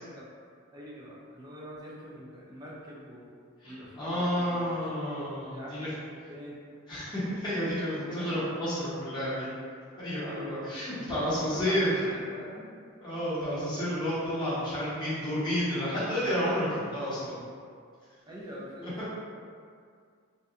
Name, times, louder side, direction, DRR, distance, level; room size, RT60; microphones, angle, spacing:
voice 1, 0.7-3.3 3.6-6.6 8.1-8.4 10.2-10.6 11.3-12.7 18.3-19.1, equal, 20° right, -6 dB, 0.4 m, -44 dB
voice 2, 3.6-5.9 6.9-9.5 10.0-12.0 13.0-17.4 18.8-18.9, equal, 20° left, -12 dB, 0.9 m, -30 dB
2.7 x 2.2 x 2.4 m, 2.2 s
head